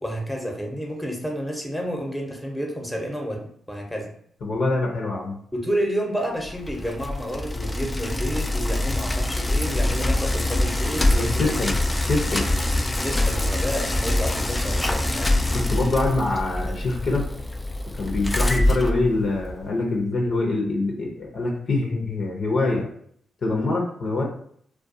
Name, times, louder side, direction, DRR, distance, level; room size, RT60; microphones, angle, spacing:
voice 1, 0.0-4.1 5.5-11.6 13.0-15.3, equal, 5° left, 0 dB, 0.8 m, -30 dB
voice 2, 4.4-5.3 11.2-11.7 12.1-12.4 15.5-17.3 18.0-22.8 23.4-24.2, left 2 dB, 60° left, -1 dB, 0.7 m, -24 dB
Bicycle, 6.5-19.6, left 1 dB, 20° left, 0.3 m, -24 dB
2.4 x 2.2 x 2.6 m, 0.63 s
supercardioid pair, 50°, 0 cm